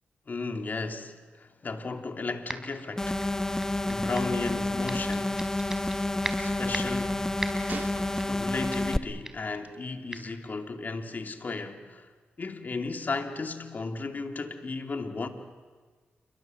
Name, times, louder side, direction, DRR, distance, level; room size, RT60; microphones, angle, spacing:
voice 1, 0.3-3.2 3.9-5.4 6.4-7.2 8.3-12.1 12.4-15.3, left 3 dB, 45° left, 2.8 m, -34 dB
sound 1, 2.5-2.8 3.2-4.4 4.9-6.0 6.2-7.0 7.4-7.8 8.2-8.4 8.7-9.0 9.2-9.5 10.1-10.2, right 1 dB, 10° right, 3.9 m, -37 dB
sound 2, 3.0-9.0, left 1 dB, 15° left, 1.2 m, -29 dB
Gunshot gunfire, 6.0-6.1 7.7-8.7 9.5-9.8, right 4 dB, 50° right, 2.5 m, -42 dB
28.0 x 23.5 x 7.9 m
cardioid pair, 55°, 4 cm